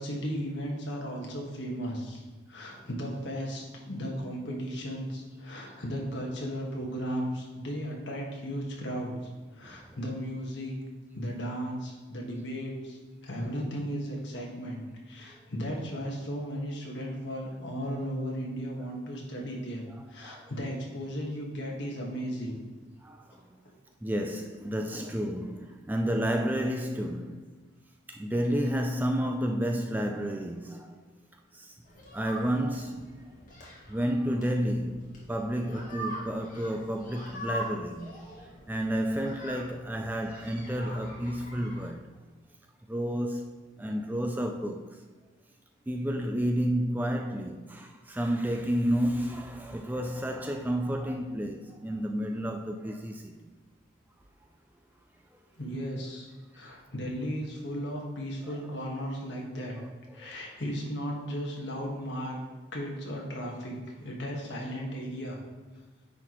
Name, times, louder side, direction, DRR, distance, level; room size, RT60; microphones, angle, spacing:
voice 1, 0.0-2.2 2.5-9.1 9.5-10.7 11.1-22.6 55.6-56.3 56.5-59.8 60.1-62.4 62.7-65.4, equal, 60° left, 1.5 m, -35 dB
voice 2, 9.6-10.1 15.7-15.8 19.9-20.5 23.0-23.4 24.0-27.5 28.1-31.0 31.5-31.8 32.1-33.3 33.9-42.0 42.9-45.0 45.9-53.5 56.6-56.7 58.4-58.7 59.8-60.4, equal, 10° right, 0.3 m, -31 dB
sound 1, 31.8-41.9, right 1 dB, 40° left, 1.6 m, -43 dB
9.6 x 4.2 x 3.0 m
head